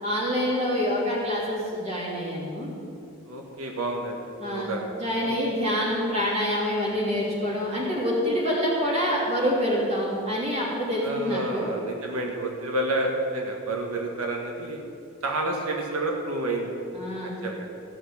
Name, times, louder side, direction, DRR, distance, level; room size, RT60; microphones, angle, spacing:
voice 1, 0.0-2.7 4.4-4.7 4.9-11.7 16.9-17.3, equal, 30° right, -4 dB, 3.2 m, -26 dB
voice 2, 3.2-4.2 4.4-4.8 5.2-5.4 11.0-14.8 15.2-16.7 17.2-17.7, right 1 dB, 90° right, 0 dB, 1.6 m, -29 dB
15.5 x 6.2 x 8.4 m, 2.6 s
head